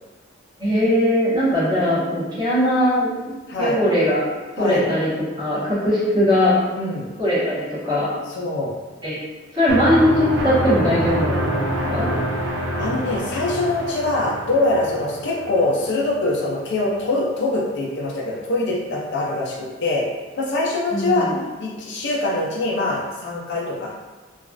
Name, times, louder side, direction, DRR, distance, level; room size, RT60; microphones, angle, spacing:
voice 1, 0.6-4.2 4.6-5.1 5.4-6.5 7.2-8.1 9.0-9.2 9.5-12.1 20.9-21.4, equal, 25° right, -11 dB, 1.2 m, -20 dB
voice 2, 6.7-7.1 8.3-8.7 12.8-20.0 20.4-21.3 21.6-23.9, left 2 dB, 60° left, -3 dB, 0.5 m, -23 dB
sound 1, 9.7-16.4, right 1 dB, 70° right, 0.5 m, -26 dB
3.0 x 2.4 x 2.5 m, 1.2 s
head